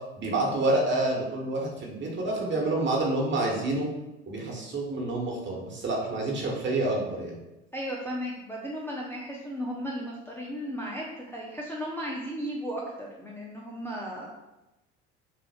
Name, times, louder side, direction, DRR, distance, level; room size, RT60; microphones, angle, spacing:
voice 1, 0.2-3.9 4.3-7.4, right 2 dB, 35° right, -1 dB, 1.3 m, -28 dB
voice 2, 7.7-14.3, equal, 5° left, -4 dB, 0.6 m, -35 dB
5.8 x 2.4 x 2.4 m, 0.99 s
hypercardioid pair, 70°, 34 cm